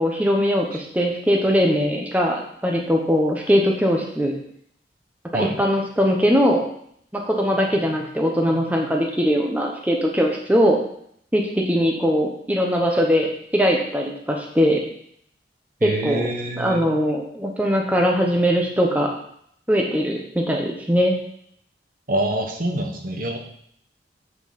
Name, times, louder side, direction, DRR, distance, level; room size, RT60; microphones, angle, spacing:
voice 1, 0.0-4.3 5.3-6.6 7.1-10.8 11.3-14.8 15.8-16.3 16.6-19.1 19.7-21.2, equal, 10° right, 0 dB, 1.0 m, -21 dB
voice 2, 15.8-16.9 22.1-23.4, right 1 dB, 50° right, 2 dB, 1.3 m, -25 dB
7.9 x 6.0 x 5.2 m, 0.67 s
head